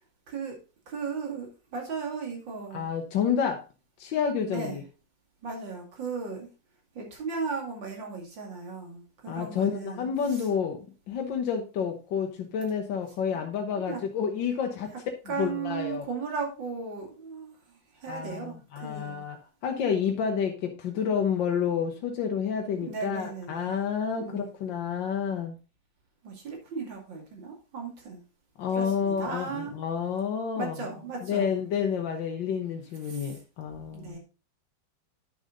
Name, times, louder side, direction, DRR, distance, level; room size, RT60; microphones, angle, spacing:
voice 1, 0.3-0.6 0.9-2.9 4.5-4.8 5.4-6.5 6.9-10.0 10.3-10.4 13.8-14.0 15.3-19.2 22.8-23.7 24.2-24.5 26.2-28.2 28.7-29.8 30.6-31.5 33.0-33.4 33.9-34.2, right 5 dB, 90° right, 1 dB, 3.2 m, -36 dB
voice 2, 2.7-3.6 4.0-4.8 9.3-10.8 11.1-14.9 15.4-16.1 18.1-19.4 19.6-25.6 28.6-30.7 31.2-34.2, left 7 dB, 85° left, 3 dB, 1.7 m, -29 dB
10.0 x 6.4 x 3.8 m, 0.31 s
omnidirectional pair, 2.0 m